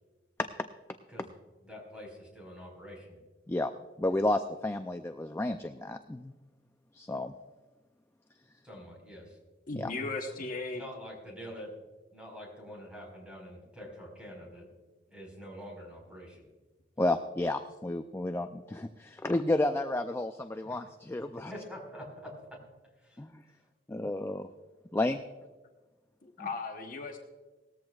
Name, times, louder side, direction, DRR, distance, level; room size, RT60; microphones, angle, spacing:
voice 1, 1.6-3.2 8.6-9.4 10.7-11.7 12.1-14.7 15.1-16.4 20.6-20.8 21.5-22.6 23.0-23.2, equal, 5° right, -2 dB, 4.7 m, -46 dB
voice 2, 4.0-6.3 6.9-7.3 9.7-9.9 17.0-21.5 23.2-23.3 23.9-24.5 24.9-25.2, left 1 dB, 15° left, 8 dB, 0.4 m, -31 dB
voice 3, 9.7-10.8 26.2-27.2, left 3 dB, 50° left, 2 dB, 1.1 m, -36 dB
18.5 x 14.0 x 2.4 m, 1.3 s
head